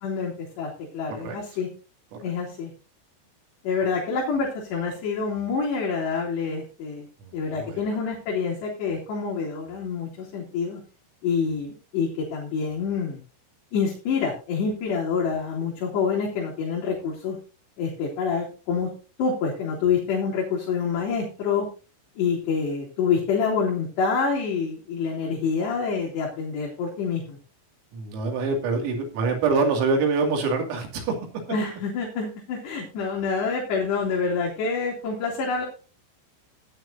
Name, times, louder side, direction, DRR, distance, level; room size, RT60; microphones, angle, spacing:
voice 1, 0.0-1.7 2.2-2.7 3.6-7.1 7.3-10.8 11.2-13.2 13.7-17.4 17.8-18.9 19.2-21.7 22.2-27.4 31.5-35.7, left 5 dB, 60° left, -4 dB, 4.6 m, -27 dB
voice 2, 7.2-8.0 27.9-31.2, right 4 dB, 85° right, 2 dB, 5.2 m, -25 dB
16.0 x 10.5 x 2.7 m, 0.33 s
omnidirectional pair, 6.0 m